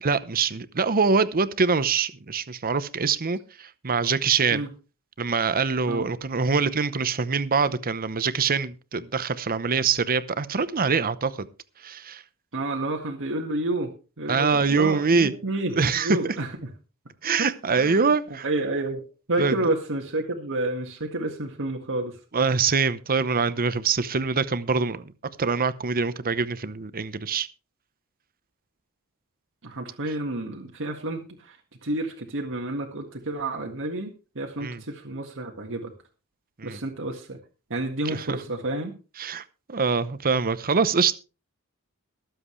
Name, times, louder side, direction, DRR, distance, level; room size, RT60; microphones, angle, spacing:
voice 1, 0.0-4.6 5.2-11.5 11.8-12.2 14.3-15.3 15.8-16.3 17.2-18.4 19.4-19.5 22.3-25.0 25.4-27.5 34.6-34.8 36.6-36.8 38.1-38.2 39.2-39.4 39.7-41.2, right 5 dB, 40° right, 0.8 m, -24 dB
voice 2, 12.5-16.7 17.4-18.1 18.4-22.2 29.6-35.9 36.6-37.4 37.7-38.9, right 2 dB, 60° right, 1.8 m, -30 dB
22.5 x 7.9 x 3.2 m
head